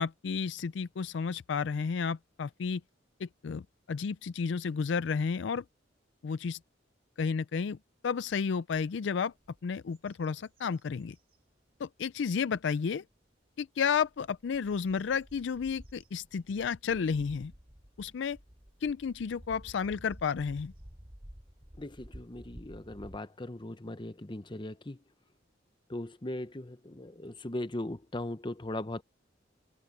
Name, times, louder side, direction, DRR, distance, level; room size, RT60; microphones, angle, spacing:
voice 1, 0.0-2.8 3.2-3.6 3.9-5.6 6.2-6.6 7.2-7.8 8.0-9.3 9.6-11.2 11.8-13.0 13.6-17.5 18.0-18.4 18.8-20.7, left 6 dB, 70° left, 0.4 m, -32 dB
sound 1, 8.7-8.8 9.3-9.6 9.9-11.4 12.0-12.1 13.8-23.2, equal, 30° right, 2.9 m, -52 dB
voice 2, 21.8-25.0 25.9-29.0, left 1 dB, 25° left, 0.9 m, -39 dB
open air
head